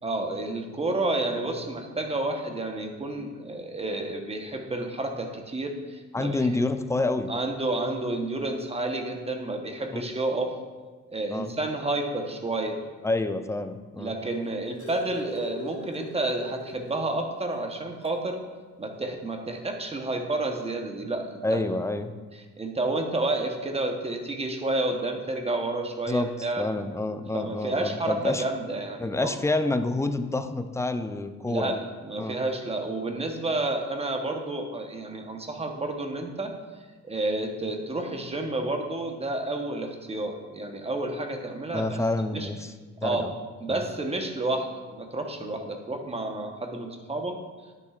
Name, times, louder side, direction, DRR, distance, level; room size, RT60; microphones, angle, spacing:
voice 1, 0.0-6.5 7.3-10.5 11.1-12.8 14.0-18.4 18.8-21.6 22.6-26.6 27.3-29.4 31.5-36.5 37.0-42.0 42.3-42.5 43.0-43.3 43.6-47.4, right 2 dB, 20° right, 3 dB, 1.0 m, -30 dB
voice 2, 6.1-7.3 9.9-10.0 11.3-11.5 13.0-14.1 21.4-22.1 26.1-26.3 26.6-28.4 29.0-31.8 32.2-32.4 41.7-42.7 43.0-43.3 43.7-43.8, left 2 dB, 10° left, 9 dB, 0.4 m, -28 dB
sound 1, 14.2-17.1 17.5-17.6 18.0-18.2 19.3-19.4, left 1 dB, 75° left, 1.6 m, -40 dB
10.0 x 6.6 x 2.4 m, 1.4 s
cardioid pair, 90°, 30 cm